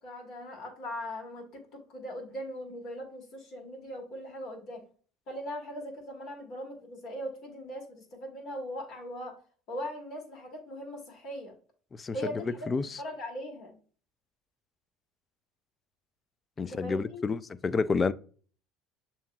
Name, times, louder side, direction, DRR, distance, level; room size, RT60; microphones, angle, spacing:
voice 1, 0.0-4.8 5.3-9.4 9.7-11.5 12.1-12.6 13.0-13.8 16.6-17.2, equal, 55° left, 2.2 m, -40 dB
voice 2, 12.7-13.0 16.6-18.1, left 4 dB, 30° left, 0.4 m, -29 dB
6.9 x 2.9 x 2.2 m
hypercardioid pair, 75°, 0 cm